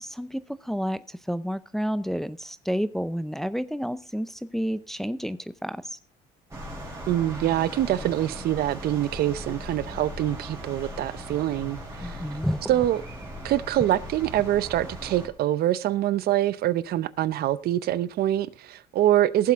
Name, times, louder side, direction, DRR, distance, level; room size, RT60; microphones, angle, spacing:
voice 1, 0.0-6.0 12.0-12.6, equal, ahead, 0.5 m, -30 dB
sound 1, 6.5-15.3, equal, 15° right, 4.2 m, -39 dB
voice 2, 7.1-12.2 12.7-13.0 13.4-19.5, right 13 dB, 65° right, 0.7 m, -25 dB
18.0 x 7.6 x 3.6 m
cardioid pair, 110°, 17 cm